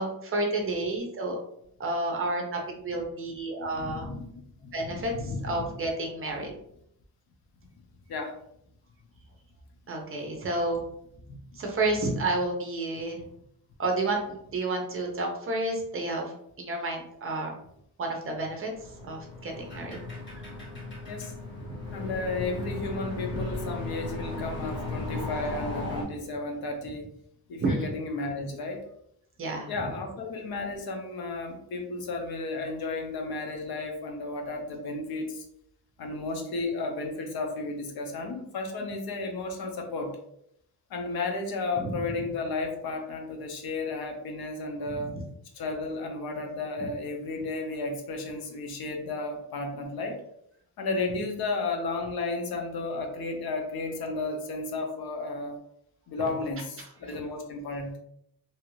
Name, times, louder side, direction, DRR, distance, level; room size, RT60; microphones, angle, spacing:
voice 1, 0.0-1.4 1.8-4.1 4.7-6.6 9.9-10.8 11.5-13.2 13.8-17.5 18.0-20.0 20.3-20.4 21.6-21.8 27.6-28.0 29.4-29.9 41.8-42.2 44.9-45.2 56.2-56.3 56.8-57.2, right 2 dB, 35° right, 1 dB, 0.6 m, -31 dB
voice 2, 3.7-5.7 8.1-8.3 11.3-11.4 21.1-21.3 21.9-27.1 27.5-28.8 29.7-35.4 36.0-40.2 40.9-45.1 45.6-50.2 50.8-55.6 56.1-58.0, left 3 dB, 75° left, 3 dB, 0.7 m, -33 dB
sound 1, 18.7-26.0, left 2 dB, 30° left, 1.1 m, -36 dB
2.9 x 2.4 x 3.0 m, 0.73 s
wide cardioid pair, 170°, 37 cm